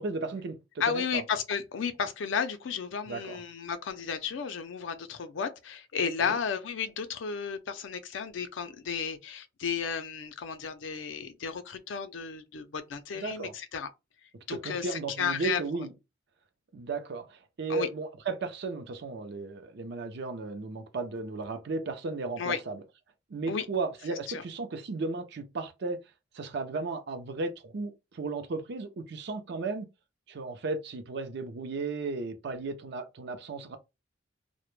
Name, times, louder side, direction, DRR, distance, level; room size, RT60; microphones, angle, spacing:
voice 1, 0.0-1.2 3.1-3.4 6.2-6.4 13.2-13.5 14.5-15.9 16.7-22.8 23.3-26.0 26.3-29.9 30.3-33.8, right 3 dB, 65° right, 0.5 m, -35 dB
voice 2, 0.8-13.9 14.5-15.6 17.7-17.9 22.4-22.6 23.5-23.7 24.3-24.4, left 6 dB, 75° left, 0.4 m, -33 dB
2.1 x 2.1 x 3.0 m
head